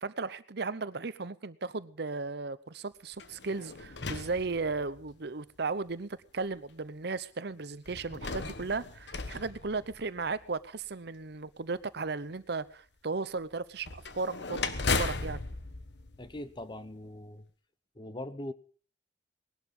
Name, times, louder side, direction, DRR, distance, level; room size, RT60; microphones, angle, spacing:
voice 1, 0.0-15.4, right 4 dB, 65° right, 0.8 m, -36 dB
sound 1, 3.1-5.1 5.9-6.0 7.9-10.4 13.8-16.9, left 4 dB, 70° left, 1.3 m, -36 dB
voice 2, 16.2-17.5 18.0-18.5, left 1 dB, 25° left, 1.0 m, -41 dB
19.5 x 12.0 x 5.5 m
head